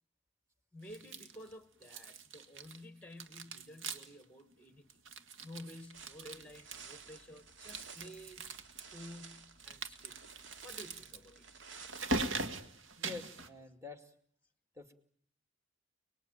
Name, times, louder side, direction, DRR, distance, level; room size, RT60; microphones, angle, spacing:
voice 1, 0.7-4.9 5.4-8.5 8.9-10.2 10.6-11.5, left 1 dB, 5° left, 1.2 m, -52 dB
sound 1, 0.9-1.5 1.8-2.9 3.1-4.2 4.5-4.6 4.9-7.1 7.6-8.8 9.6-13.5, right 2 dB, 90° right, 2.0 m, -41 dB
sound 2, 5.9-12.3, right 5 dB, 70° right, 2.2 m, -54 dB
voice 2, 13.0-14.1 14.7-14.9, left 4 dB, 15° right, 2.3 m, -47 dB
30.0 x 20.5 x 9.2 m
head